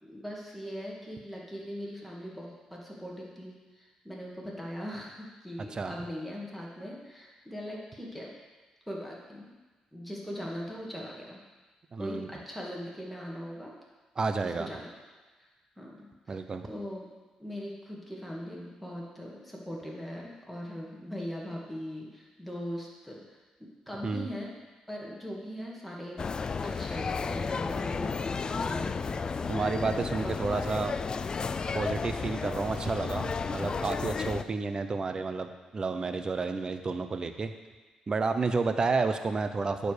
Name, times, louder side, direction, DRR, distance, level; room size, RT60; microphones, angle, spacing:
voice 1, 0.0-8.3 8.9-9.5 9.9-11.4 12.0-13.7 14.4-14.9 15.4-15.5 15.8-17.1 17.4-24.5 24.9-26.3 26.6-29.2 30.2-30.4, equal, ahead, -4 dB, 2.3 m, -40 dB
voice 2, 11.9-12.3 14.2-14.7 16.3-16.7 24.0-24.3 29.5-30.9 31.7-37.5 38.1-39.9, right 4 dB, 35° right, 8 dB, 0.8 m, -30 dB
sound 1, 26.2-34.4, left 5 dB, 40° left, 0.4 m, -33 dB
8.9 x 5.1 x 6.7 m, 1.3 s
cardioid pair, 80°, 2 cm